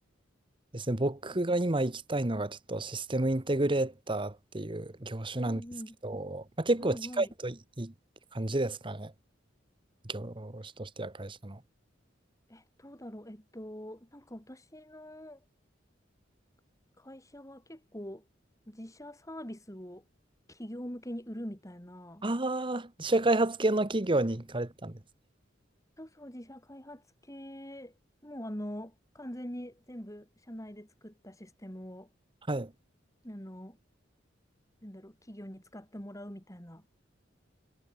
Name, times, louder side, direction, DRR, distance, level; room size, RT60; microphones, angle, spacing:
voice 1, 0.7-5.6 6.0-7.9 8.3-9.1 10.1-11.6 22.2-24.9 32.5-32.7, right 2 dB, 25° right, 1.3 m, -30 dB
voice 2, 5.4-6.0 6.8-7.3 12.5-15.4 17.0-18.2 18.7-20.0 20.5-22.3 26.0-28.0 28.2-32.1 33.2-33.8 34.8-36.8, equal, 15° left, 7.4 m, -44 dB
head